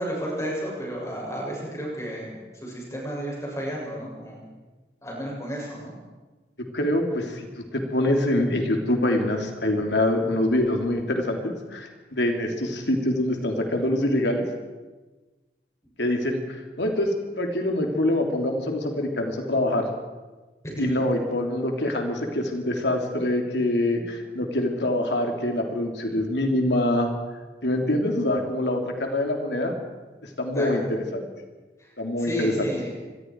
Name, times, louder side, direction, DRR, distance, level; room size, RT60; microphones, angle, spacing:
voice 1, 0.0-4.6 5.0-5.9 20.8-21.0 30.5-30.7 31.8-31.9 32.2-33.1, right 1 dB, 15° left, -3 dB, 7.5 m, -32 dB
voice 2, 6.7-7.5 7.7-14.5 16.0-19.9 20.8-27.1 27.6-29.7 30.4-30.8 31.1-31.2 32.0-32.7, left 1 dB, 85° left, 2 dB, 3.5 m, -25 dB
26.0 x 21.0 x 4.9 m, 1.3 s
head